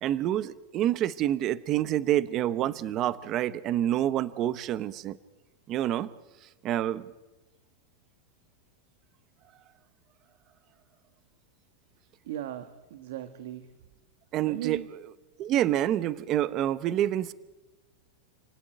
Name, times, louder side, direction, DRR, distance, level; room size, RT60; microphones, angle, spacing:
voice 1, 0.0-5.2 5.7-6.1 6.6-7.1 14.3-14.8 15.4-17.3, right 12 dB, 30° right, 16 dB, 0.8 m, -27 dB
voice 2, 12.2-13.7 14.5-14.9, right 12 dB, 65° right, 10 dB, 1.7 m, -37 dB
28.5 x 18.0 x 9.2 m, 1.1 s
supercardioid pair, 165°, 0 cm